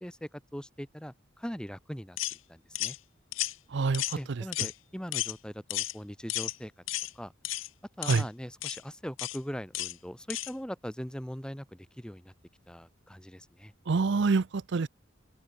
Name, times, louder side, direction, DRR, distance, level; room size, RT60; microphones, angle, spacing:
voice 1, 0.0-2.2 2.5-3.0 4.1-6.7 7.1-7.3 8.0-12.3 12.7-13.7, equal, 5° left, 1.5 m, -41 dB
sound 1, 2.2-2.4 2.8-3.0 3.3-3.5 3.9-4.2 4.5-4.7 5.1-5.3 5.7-5.9 6.3-6.6 6.9-7.1 7.4-7.7 8.0-8.2 8.6-8.8 9.2-9.4 9.7-9.9 10.3-10.5, left 16 dB, 85° left, 0.6 m, -33 dB
voice 2, 3.7-4.0 8.0-8.2 13.9-14.9, right 4 dB, 65° right, 0.5 m, -26 dB
head